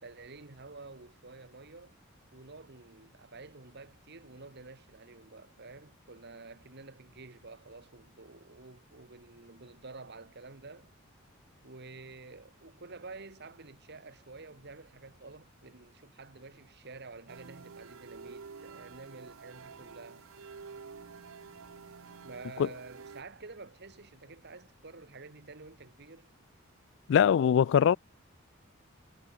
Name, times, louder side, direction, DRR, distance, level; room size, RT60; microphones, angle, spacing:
voice 1, 0.0-2.0 2.3-10.9 11.6-20.3 22.2-26.3, right 3 dB, 55° right, 1.8 m, -49 dB
sound 1, 17.3-23.2, right 5 dB, 80° right, 0.7 m, -49 dB
voice 2, 27.1-28.0, left 8 dB, 65° left, 0.3 m, -22 dB
head